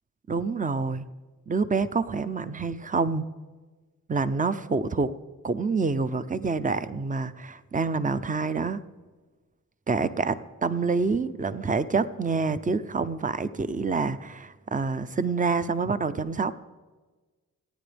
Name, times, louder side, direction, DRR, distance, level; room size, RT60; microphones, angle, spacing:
voice 1, 0.3-1.1 1.5-3.3 4.1-5.1 5.4-8.8 9.9-16.5, right 4 dB, 20° right, 13 dB, 0.7 m, -27 dB
25.5 x 9.3 x 3.5 m, 1.3 s
cardioid pair, 60°, 36 cm